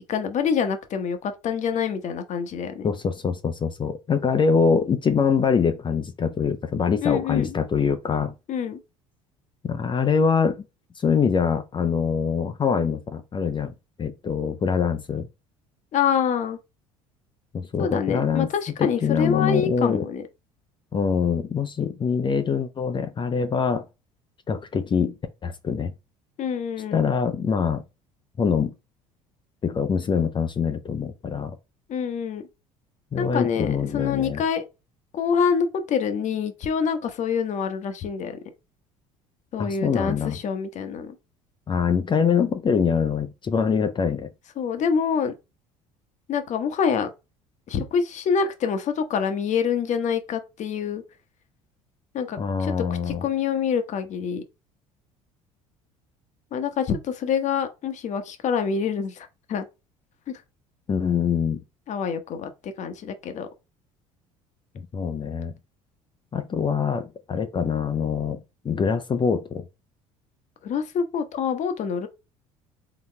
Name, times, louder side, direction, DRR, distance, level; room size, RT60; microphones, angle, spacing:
voice 1, 0.1-2.9 7.0-7.6 8.5-8.8 15.9-16.6 17.8-20.2 26.4-27.1 31.9-32.4 33.2-34.6 35.1-38.4 39.5-41.1 44.6-45.3 46.3-47.1 47.7-51.0 52.1-52.7 53.1-54.4 56.5-59.7 61.9-63.5 70.6-72.1, left 6 dB, 45° left, 1.0 m, -26 dB
voice 2, 2.8-8.3 9.6-10.6 11.0-15.3 17.5-18.5 18.8-20.1 20.9-23.9 24.5-25.1 25.4-25.9 26.9-27.8 28.4-28.7 29.6-31.6 33.1-34.4 39.6-40.4 41.7-44.3 52.4-53.2 60.9-61.6 64.7-65.5 66.3-69.6, left 6 dB, 30° left, 0.6 m, -24 dB
4.1 x 4.0 x 3.1 m
figure-of-eight pair, 60°, 17 cm